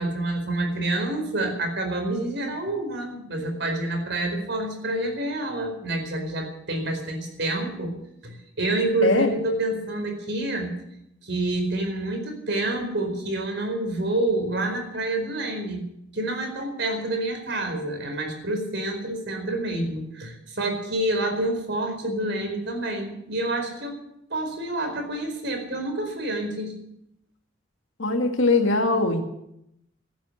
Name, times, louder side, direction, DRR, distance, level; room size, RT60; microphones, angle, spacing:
voice 1, 0.0-8.0 8.2-10.7 11.2-15.8 16.1-24.0 24.3-26.7, right 2 dB, 60° right, 4 dB, 4.6 m, -28 dB
voice 2, 9.0-9.3 28.0-29.2, left 3 dB, 85° left, 3 dB, 2.1 m, -21 dB
14.5 x 10.5 x 9.4 m, 0.78 s
head